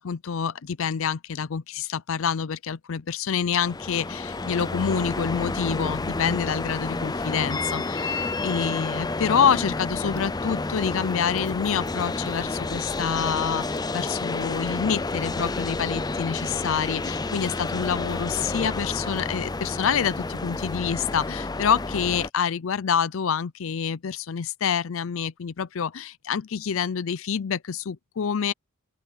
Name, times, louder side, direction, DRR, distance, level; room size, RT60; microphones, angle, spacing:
voice 1, 0.0-28.5, left 7 dB, 65° left, 0.5 m, -27 dB
sound 1, 3.5-22.3, left 3 dB, 20° left, 0.5 m, -30 dB
open air
head